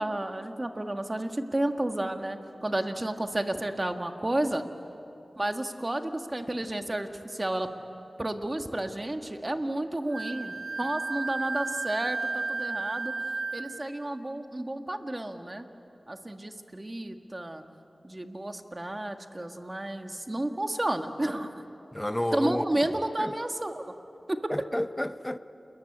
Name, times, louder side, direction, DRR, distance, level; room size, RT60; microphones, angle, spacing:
voice 1, 0.0-4.6 5.3-7.7 8.2-13.1 13.5-15.6 16.1-17.6 18.0-21.6 22.3-23.9 24.3-24.5, right 1 dB, 30° right, 1.7 m, -31 dB
Wind instrument woodwind instrument, 10.1-13.8, right 3 dB, 85° right, 0.8 m, -33 dB
voice 2, 21.9-22.7 23.2-23.3 24.5-25.4, left 1 dB, 15° left, 0.8 m, -30 dB
28.5 x 22.5 x 8.7 m
wide cardioid pair, 65°, 0 cm